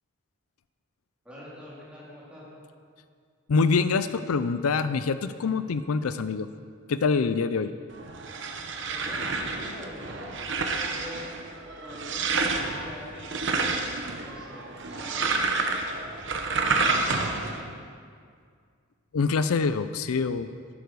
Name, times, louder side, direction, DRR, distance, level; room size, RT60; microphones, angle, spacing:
voice 1, 1.2-2.4 8.9-11.3 11.6-16.3 16.7-17.7, left 1 dB, 5° right, -9 dB, 3.7 m, -45 dB
voice 2, 3.5-6.5 6.9-7.7 19.1-20.5, left 4 dB, 85° left, 12 dB, 0.5 m, -25 dB
sound 1, 7.9-17.6, right 3 dB, 55° right, 1.0 m, -29 dB
12.5 x 12.0 x 4.7 m, 2.1 s
head